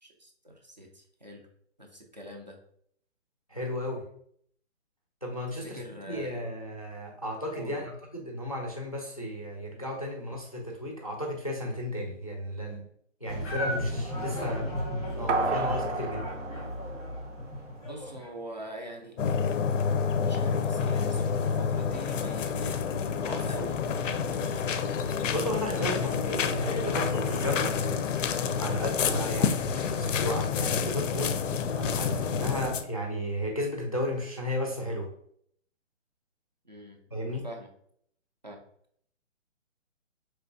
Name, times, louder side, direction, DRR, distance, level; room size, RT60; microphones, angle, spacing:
voice 1, 0.0-1.4 1.8-2.6 5.5-6.4 7.5-7.9 17.9-19.2 20.2-22.9 23.2-23.8 36.6-37.0 37.4-37.7 38.4-38.6, right 1 dB, 35° right, 2 dB, 0.4 m, -43 dB
voice 2, 3.5-4.0 5.2-12.8 13.2-14.7 15.1-16.3 25.3-27.8 28.6-31.4 31.8-35.1 37.1-37.4, equal, 30° left, 0 dB, 0.4 m, -34 dB
sound 1, 13.2-18.3, left 1 dB, 5° left, 0.7 m, -34 dB
sound 2, 15.3-17.8 18.2-18.3, right 3 dB, 75° right, 0.7 m, -32 dB
sound 3, 19.2-32.8, left 6 dB, 80° left, 0.5 m, -28 dB
4.4 x 3.2 x 2.5 m, 0.66 s
hypercardioid pair, 175°, 38 cm